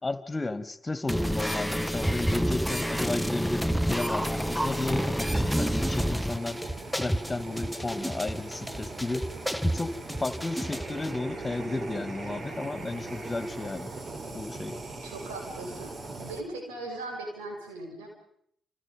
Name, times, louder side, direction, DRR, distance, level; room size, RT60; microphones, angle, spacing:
voice 1, 0.0-6.6 6.9-9.3 9.6-13.9 14.3-14.8, left 2 dB, 25° left, 12 dB, 2.5 m, -33 dB
sound 1, 1.1-11.1, equal, ahead, 1.1 m, -29 dB
Fire, 4.0-16.4, right 3 dB, 45° right, 3.8 m, -40 dB
voice 2, 15.0-18.1, right 2 dB, 85° right, 2 dB, 7.0 m, -39 dB
29.5 x 28.5 x 5.5 m, 0.72 s
hypercardioid pair, 40°, 0 cm